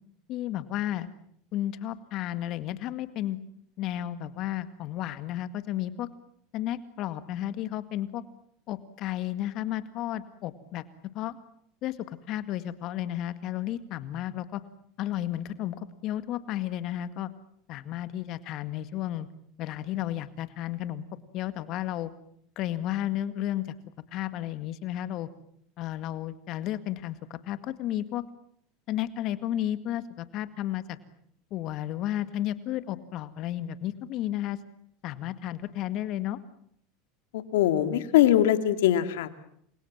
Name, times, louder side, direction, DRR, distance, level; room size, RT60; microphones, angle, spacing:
voice 1, 0.3-1.1 1.5-3.4 3.8-6.1 6.5-8.2 8.7-10.8 11.1-11.4 11.8-14.6 15.0-17.3 17.7-19.3 19.6-21.0 21.3-22.1 22.6-23.7 24.1-25.3 25.8-28.2 28.9-31.0 31.5-34.6 35.0-36.4, left 13 dB, 55° left, 12 dB, 1.9 m, -32 dB
voice 2, 37.3-39.3, left 12 dB, 75° left, 10 dB, 2.3 m, -22 dB
29.0 x 24.5 x 7.4 m, 0.68 s
hypercardioid pair, 95°, 0 cm